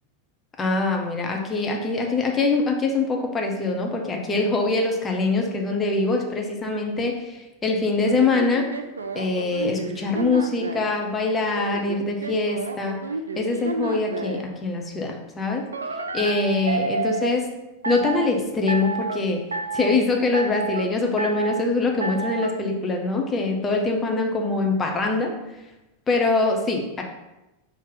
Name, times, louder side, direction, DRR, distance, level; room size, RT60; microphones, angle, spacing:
voice 1, 0.6-8.7 9.1-13.0 13.4-15.7 16.1-17.5 17.8-19.4 19.7-25.4 26.1-27.0, left 3 dB, 20° left, 2 dB, 0.7 m, -23 dB
sound 1, 8.0-11.0 11.5-14.5 15.7-17.4 17.8-18.3 18.7-19.2 19.5-20.0 20.3-20.9 21.2-21.6 22.0-22.5, right 3 dB, 75° right, 0.3 m, -30 dB
4.5 x 2.9 x 3.8 m, 0.99 s
figure-of-eight pair, 90°, 0 cm